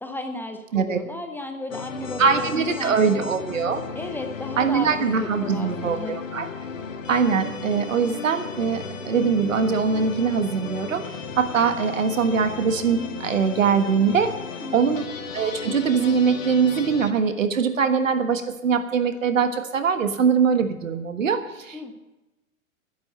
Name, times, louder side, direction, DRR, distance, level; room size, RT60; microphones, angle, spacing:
voice 1, 0.0-3.3 3.9-4.9 5.2-6.2 14.6-15.0 21.7-21.9, left 2 dB, 5° left, 5 dB, 0.8 m, -34 dB
sound 1, 1.7-17.1, left 5 dB, 65° left, 1.6 m, -35 dB
voice 2, 2.2-3.8 4.6-6.5 7.1-11.0 11.4-14.3 14.7-21.9, right 6 dB, 65° right, 9 dB, 1.5 m, -22 dB
12.0 x 11.0 x 6.7 m, 1.0 s
figure-of-eight pair, 105°, 41 cm